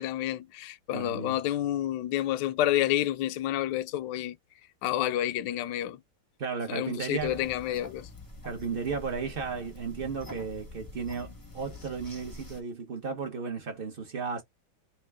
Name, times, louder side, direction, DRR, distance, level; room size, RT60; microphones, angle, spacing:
voice 1, 0.0-4.4 4.8-6.0 6.7-8.1, left 13 dB, 75° left, 1.1 m, -29 dB
voice 2, 0.9-1.4 6.4-7.5 8.4-14.4, right 5 dB, 45° right, 0.7 m, -34 dB
sound 1, 7.2-12.6, left 2 dB, 20° left, 0.5 m, -46 dB
3.3 x 2.9 x 3.4 m
omnidirectional pair, 2.2 m